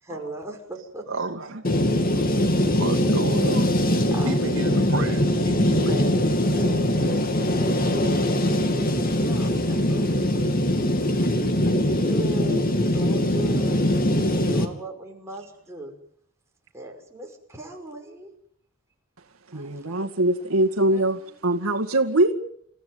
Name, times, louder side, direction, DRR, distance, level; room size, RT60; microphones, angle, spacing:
voice 1, 0.0-1.1 1.8-2.8 4.1-4.4 4.6-4.8 5.9-8.9 9.2-10.9 11.7-13.8 14.5-16.0 16.7-18.3 19.5-20.1 20.9-21.7, right 1 dB, 15° right, 5.8 m, -38 dB
voice 2, 1.1-1.6 2.0-2.1 2.7-3.7 4.2-6.0, right 2 dB, 65° right, 2.6 m, -31 dB
sound 1, 1.6-14.7, left 1 dB, 45° left, 2.8 m, -22 dB
voice 3, 19.5-22.3, right 1 dB, 85° right, 2.0 m, -22 dB
29.0 x 15.5 x 9.5 m
head